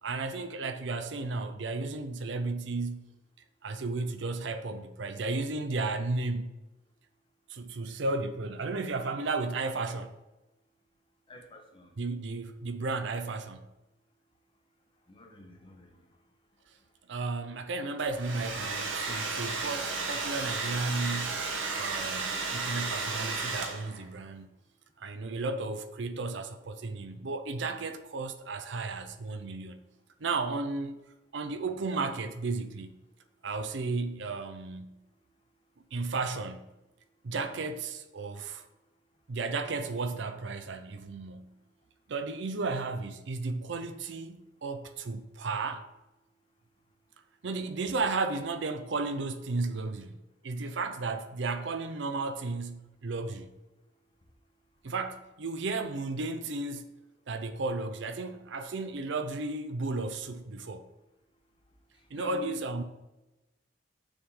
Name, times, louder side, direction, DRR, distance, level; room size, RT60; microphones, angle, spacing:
voice 1, 0.0-3.1 3.6-6.5 7.5-10.1 12.0-13.7 17.1-21.5 21.7-24.5 25.0-29.9 30.2-31.0 31.3-33.0 33.4-35.0 35.9-36.7 37.2-38.7 39.3-41.6 42.1-45.8 47.4-53.6 54.8-57.0 57.3-60.9 62.1-62.8, right 3 dB, 65° right, 0.5 m, -34 dB
voice 2, 11.3-11.9 15.1-16.0 62.2-62.6, left 2 dB, 25° left, 0.9 m, -47 dB
Domestic sounds home sounds, 18.0-24.1, right 4 dB, 80° right, 1.2 m, -33 dB
7.0 x 3.7 x 5.4 m
head